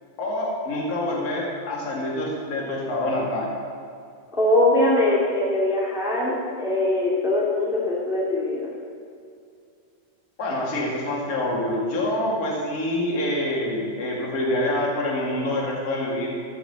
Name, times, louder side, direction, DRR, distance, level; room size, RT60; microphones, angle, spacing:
voice 1, 0.2-3.5 10.4-16.3, left 1 dB, 30° left, -3 dB, 1.9 m, -26 dB
voice 2, 4.3-8.7, left 1 dB, ahead, -5 dB, 1.0 m, -22 dB
14.0 x 5.7 x 7.0 m, 2.4 s
omnidirectional pair, 4.3 m